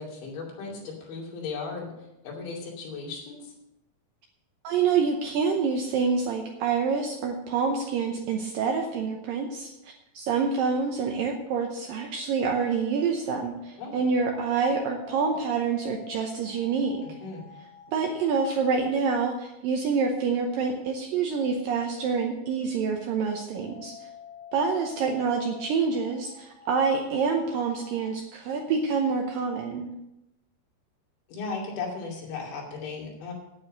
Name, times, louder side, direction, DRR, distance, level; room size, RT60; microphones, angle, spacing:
voice 1, 0.0-1.9 2.2-3.5 13.8-14.0 17.0-17.5 31.3-33.3, left 4 dB, 85° left, -2 dB, 5.0 m, -36 dB
voice 2, 4.6-17.1 17.9-24.0 24.5-29.9, right 5 dB, 80° right, 2 dB, 2.1 m, -27 dB
sound 1, 11.5-18.8 20.9-28.2, left 8 dB, 70° left, 4.1 m, -49 dB
9.4 x 9.1 x 6.5 m, 0.90 s
omnidirectional pair, 5.0 m